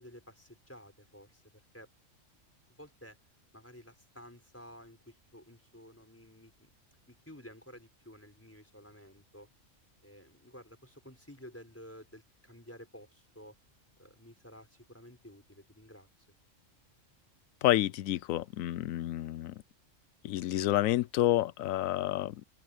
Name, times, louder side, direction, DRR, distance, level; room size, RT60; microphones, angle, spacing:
voice 1, 0.0-1.9 2.8-3.2 3.5-6.7 7.1-9.5 10.0-13.6 14.0-16.1, equal, 10° left, 4.5 m, -53 dB
voice 2, 17.6-19.5 20.2-22.4, left 14 dB, 85° left, 1.0 m, -29 dB
open air
omnidirectional pair, 1.4 m